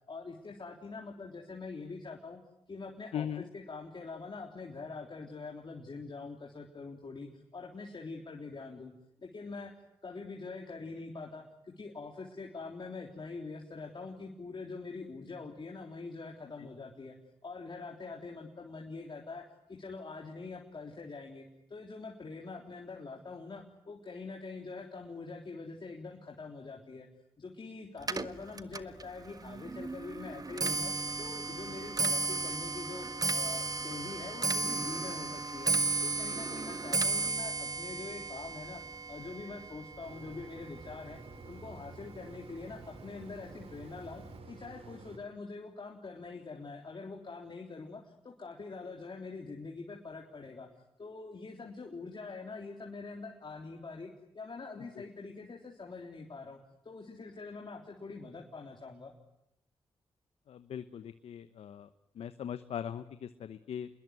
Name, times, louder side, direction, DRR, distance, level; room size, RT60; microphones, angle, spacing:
voice 1, 0.1-2.4 2.7-8.9 9.2-9.7 10.0-17.2 17.4-27.1 27.4-35.7 36.0-50.7 51.0-56.6 56.8-59.1, left 4 dB, 50° left, 0 dB, 3.7 m, -44 dB
voice 2, 3.1-3.4 55.0-55.1 60.5-61.9 62.2-63.9, left 9 dB, 80° left, 11 dB, 1.0 m, -40 dB
Clock, 28.0-41.3 41.7-42.1 42.9-43.0 43.4-43.7 44.0-44.1, right 3 dB, 40° right, 1.5 m, -34 dB
sound 1, 40.0-45.2, right 3 dB, 70° right, 3.8 m, -50 dB
28.0 x 21.5 x 9.7 m, 0.88 s
supercardioid pair, 40°, 10 cm